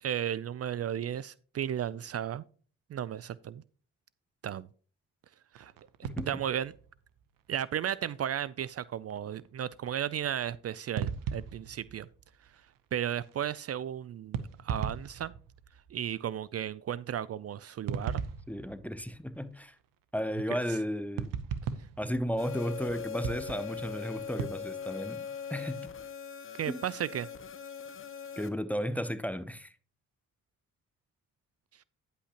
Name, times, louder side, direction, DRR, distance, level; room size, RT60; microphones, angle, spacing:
voice 1, 0.0-2.4 2.9-3.6 4.4-4.7 5.5-5.7 6.0-6.7 7.5-12.1 12.9-15.3 15.9-18.2 26.6-27.3, right 10 dB, 50° right, 0.4 m, -34 dB
sound 1, 5.5-7.9 8.3-8.4 8.6-8.8 9.1-9.5 9.9-10.0 11.0-12.8 13.0-13.7 14.3-16.3 17.9-19.7 21.2-22.9 23.2-24.5, right 7 dB, 90° right, 0.8 m, -39 dB
voice 2, 6.0-6.4 18.5-19.7 20.1-21.3 22.0-25.9 26.7-26.8 28.4-29.7, equal, 5° left, 0.6 m, -34 dB
sound 2, 22.4-28.5, left 7 dB, 40° left, 0.9 m, -41 dB
9.9 x 8.3 x 2.9 m
cardioid pair, 75°, 32 cm